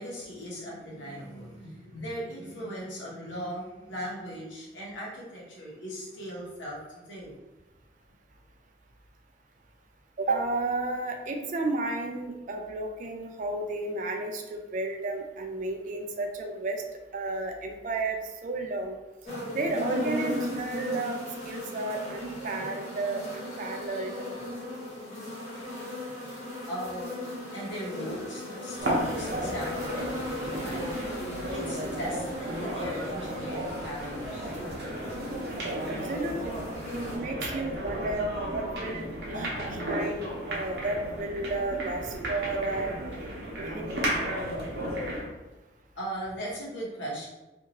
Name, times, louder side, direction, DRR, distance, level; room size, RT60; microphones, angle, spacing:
voice 1, 0.0-7.4 26.7-30.9 31.4-34.6 39.5-39.6 46.0-47.3, equal, 80° left, -5 dB, 1.0 m, -38 dB
voice 2, 10.2-16.8 17.1-19.0 19.5-24.1 35.9-43.0 43.6-44.2, right 2 dB, 40° right, 4 dB, 0.3 m, -32 dB
sound 1, 19.3-37.2, left 1 dB, 35° left, 1.0 m, -37 dB
sound 2, 28.8-45.3, right 1 dB, 65° right, 0.8 m, -34 dB
2.7 x 2.5 x 2.9 m, 1.1 s
head